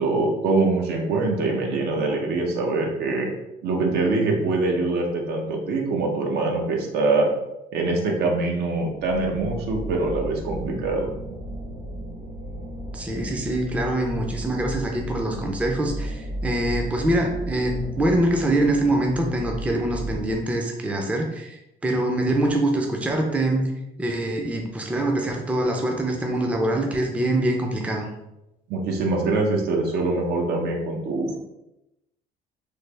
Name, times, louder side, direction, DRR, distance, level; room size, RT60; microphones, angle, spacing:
voice 1, 0.0-3.3 3.6-7.3 7.7-11.1 28.7-31.4, right 3 dB, 70° right, 0 dB, 0.7 m, -24 dB
sound 1, 8.9-20.3, right 1 dB, 45° right, 0.9 m, -34 dB
voice 2, 12.9-23.7 24.0-28.1, right 1 dB, 10° right, 1 dB, 0.4 m, -24 dB
3.2 x 2.0 x 3.2 m, 0.90 s
cardioid pair, 110°, 17 cm